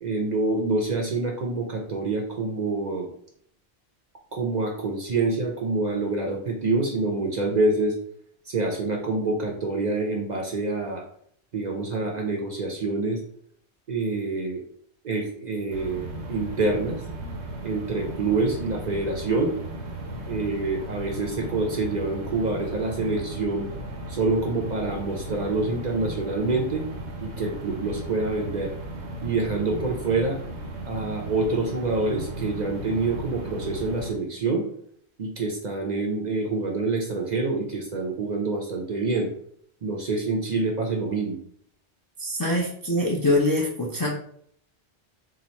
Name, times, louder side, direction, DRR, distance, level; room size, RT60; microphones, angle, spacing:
voice 1, 0.0-3.1 4.3-7.9 8.5-11.0 11.5-13.2 13.9-14.6 15.0-17.0 17.6-19.5 20.3-23.7 24.1-26.8 27.2-28.7 29.2-30.4 30.9-34.7 35.2-39.3 39.8-41.4, right 3 dB, 50° right, 1 dB, 0.6 m, -26 dB
sound 1, 15.7-34.1, right 1 dB, 85° right, 1.0 m, -36 dB
voice 2, 42.2-44.1, left 1 dB, 30° left, -3 dB, 0.4 m, -24 dB
2.8 x 2.4 x 4.1 m, 0.64 s
omnidirectional pair, 1.1 m